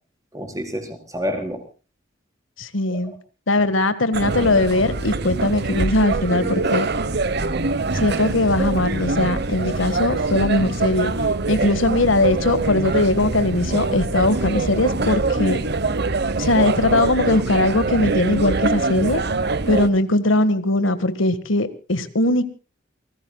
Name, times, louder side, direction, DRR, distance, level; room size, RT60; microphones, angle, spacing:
voice 1, 0.3-1.6 2.9-3.1 6.3-6.9, equal, 20° right, 5 dB, 4.5 m, -30 dB
voice 2, 2.6-3.1 3.5-6.9 7.9-11.1 11.5-15.6 16.4-19.2 19.7-22.5, left 2 dB, 80° left, 13 dB, 1.7 m, -20 dB
sound 1, 4.1-19.9, right 3 dB, 55° right, 1.1 m, -24 dB
28.5 x 19.0 x 2.3 m, 0.34 s
head